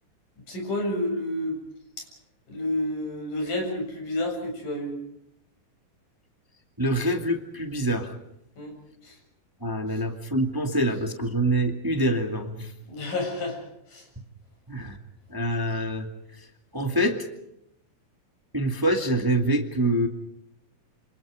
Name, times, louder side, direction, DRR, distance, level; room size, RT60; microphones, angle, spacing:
voice 1, 0.5-1.6 2.0-2.1 2.5-5.0 8.6-8.7 9.0-9.2 9.9-10.0 12.9-14.1, left 1 dB, 55° left, 2 dB, 9.0 m, -30 dB
voice 2, 6.8-8.1 9.6-12.7 14.7-15.0 15.3-16.1 16.7-17.2 18.5-20.1, right 1 dB, 10° right, 5 dB, 1.2 m, -25 dB
27.0 x 27.0 x 5.0 m, 0.80 s
omnidirectional pair, 4.3 m